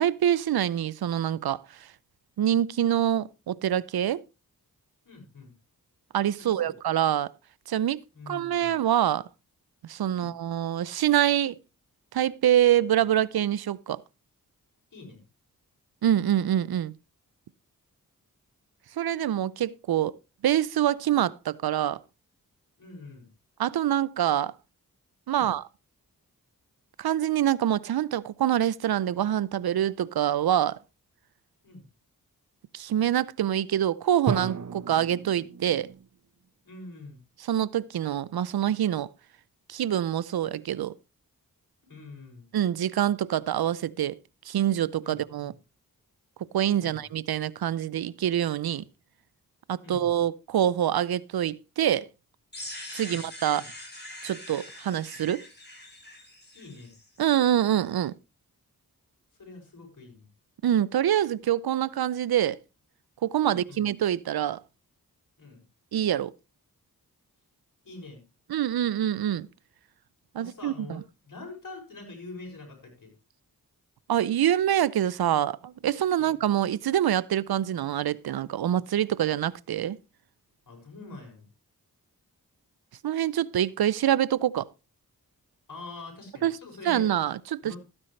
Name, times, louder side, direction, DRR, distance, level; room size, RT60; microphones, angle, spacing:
voice 1, 0.0-1.6 2.4-4.2 6.1-7.3 7.7-8.0 8.3-9.2 9.9-11.5 12.1-14.0 16.0-16.9 19.0-20.2 20.4-22.0 23.6-24.5 25.3-25.6 27.0-30.8 32.7-35.9 37.5-39.1 39.7-40.9 42.5-44.2 44.5-45.5 46.5-48.8 49.7-52.1 52.9-53.6 54.2-55.4 57.2-58.1 60.6-62.6 63.2-64.6 65.9-66.3 68.5-69.5 70.3-71.0 74.1-80.0 83.0-84.7 86.4-86.6 86.9-87.8, right 11 dB, 80° right, 0.6 m, -25 dB
voice 2, 5.0-5.5 6.4-6.7 8.1-8.8 10.1-10.3 14.9-15.2 22.8-23.3 25.3-25.5 31.6-31.8 36.6-37.2 41.8-42.4 45.0-45.5 46.8-47.0 49.8-50.2 53.0-53.2 53.5-53.7 56.5-56.9 59.4-60.3 63.4-63.9 65.4-65.6 67.8-68.2 70.4-73.1 76.2-76.4 80.7-81.5 85.7-87.1 87.6-87.8, left 3 dB, 60° left, 6.4 m, -45 dB
Drum, 34.3-36.2, right 6 dB, 50° right, 1.0 m, -33 dB
sound 1, 52.5-57.4, left 1 dB, 30° left, 7.8 m, -43 dB
13.5 x 9.8 x 3.2 m
cardioid pair, 60°, 37 cm